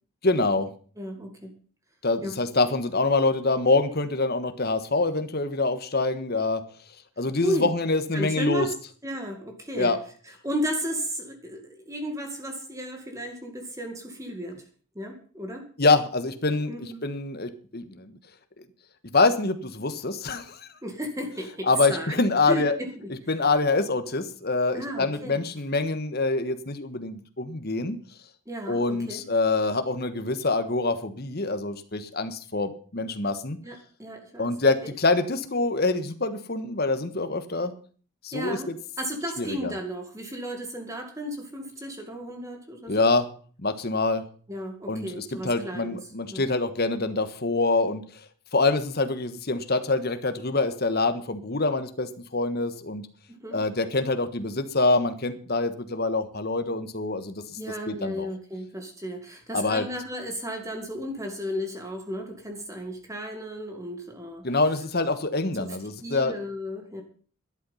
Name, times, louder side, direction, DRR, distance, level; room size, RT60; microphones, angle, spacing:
voice 1, 0.2-0.7 2.0-6.6 7.2-8.7 9.7-10.0 15.8-18.2 19.1-20.7 21.7-22.7 23.3-28.0 28.7-33.6 34.4-37.7 38.2-38.8 39.4-39.7 42.9-43.3 43.6-44.2 44.9-48.2 48.5-53.1 53.5-57.4 57.9-58.3 59.5-59.9 64.4-66.4, left 3 dB, 45° left, 10 dB, 1.3 m, -25 dB
voice 2, 1.0-1.6 2.2-2.4 7.4-7.7 8.1-8.7 9.0-10.0 10.4-14.6 15.0-15.7 16.7-17.0 20.8-22.2 22.5-23.1 24.7-25.4 28.5-29.2 33.6-34.5 34.8-34.9 38.3-38.7 39.0-43.1 44.5-46.0 46.3-46.4 53.3-53.6 57.6-64.5 65.6-65.8 66.0-67.0, equal, 15° right, 4 dB, 2.0 m, -34 dB
12.5 x 11.0 x 5.7 m, 0.42 s
head